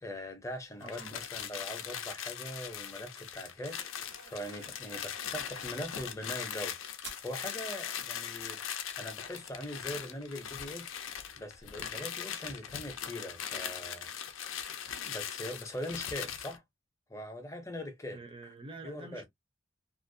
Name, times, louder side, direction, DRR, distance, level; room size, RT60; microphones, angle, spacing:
voice 1, 0.0-6.8 7.2-11.0 11.4-14.1 15.0-16.6 17.1-18.2 18.8-19.2, left 1 dB, 15° left, 0.6 m, -42 dB
sound 1, 0.8-16.6, left 9 dB, 75° left, 0.4 m, -40 dB
voice 2, 0.8-1.2 18.1-19.2, right 2 dB, 25° right, 0.6 m, -47 dB
sound 2, 3.6-6.2, right 2 dB, 80° right, 1.1 m, -58 dB
sound 3, 7.0-13.2, right 5 dB, 60° right, 0.8 m, -60 dB
2.4 x 2.0 x 2.6 m
head